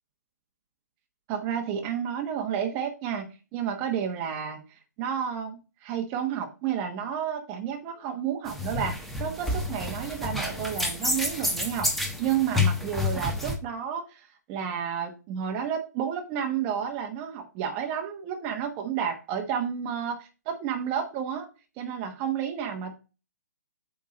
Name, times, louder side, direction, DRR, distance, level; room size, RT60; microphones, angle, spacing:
voice 1, 1.3-11.9 12.2-21.5 21.8-23.0, right 8 dB, 25° right, 2 dB, 1.1 m, -31 dB
sound 1, 8.5-13.6, left 2 dB, ahead, 1.0 m, -29 dB
8.4 x 3.6 x 5.0 m, 0.32 s
figure-of-eight pair, 135°, 10 cm